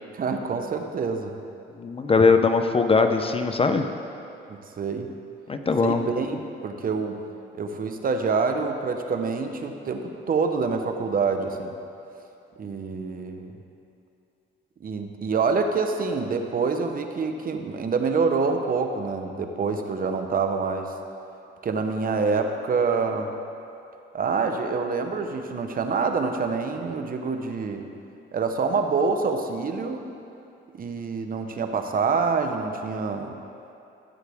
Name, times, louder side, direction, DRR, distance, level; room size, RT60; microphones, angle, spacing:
voice 1, 0.1-1.4 4.5-5.1 5.8-7.2 7.5-11.7 12.6-13.5 14.8-20.9 21.6-23.3 24.1-27.9 28.3-30.0 30.7-33.4, right 4 dB, 45° right, 5 dB, 0.9 m, -26 dB
voice 2, 1.8-3.9 5.5-6.0, left 4 dB, 30° left, 7 dB, 0.6 m, -20 dB
14.5 x 8.0 x 3.5 m, 2.6 s
cardioid pair, 90°, 20 cm